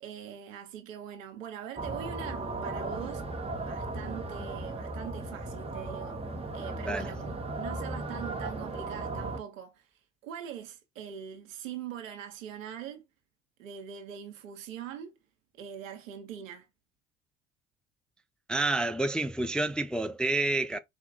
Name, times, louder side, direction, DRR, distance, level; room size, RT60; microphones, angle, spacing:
voice 1, 0.0-3.3 3.6-6.2 6.5-9.9 10.2-13.1 13.6-15.1 15.5-16.7, right 9 dB, 85° right, 1.0 m, -42 dB
sound 1, 1.8-9.4, right 2 dB, 15° right, 1.1 m, -36 dB
voice 2, 18.5-20.8, right 2 dB, 5° left, 0.3 m, -29 dB
4.2 x 2.4 x 4.0 m
hypercardioid pair, 60°, 39 cm